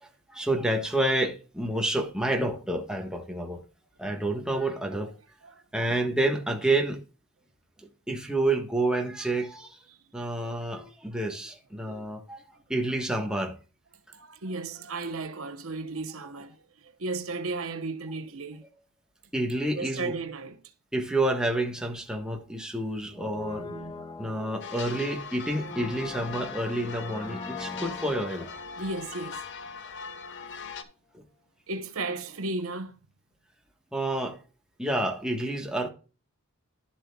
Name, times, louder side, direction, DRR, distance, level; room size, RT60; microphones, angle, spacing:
voice 1, 0.0-3.6 4.0-5.1 5.7-7.0 8.1-9.8 10.1-12.4 12.7-13.6 19.3-20.1 20.9-23.7 24.2-28.5 31.1-31.2 33.9-34.4 34.8-35.9, right 1 dB, 5° right, 1.3 m, -29 dB
voice 2, 5.4-6.0 10.3-10.5 11.8-12.1 14.1-18.7 19.8-20.6 23.6-24.4 28.8-29.4 30.4-30.7 31.7-33.0, right 3 dB, 75° right, 1.0 m, -35 dB
Brass instrument, 23.1-30.0 30.2-30.3, left 3 dB, 20° left, 0.5 m, -43 dB
sound 1, 24.6-30.8, left 5 dB, 60° left, 0.9 m, -40 dB
12.0 x 7.4 x 2.3 m
head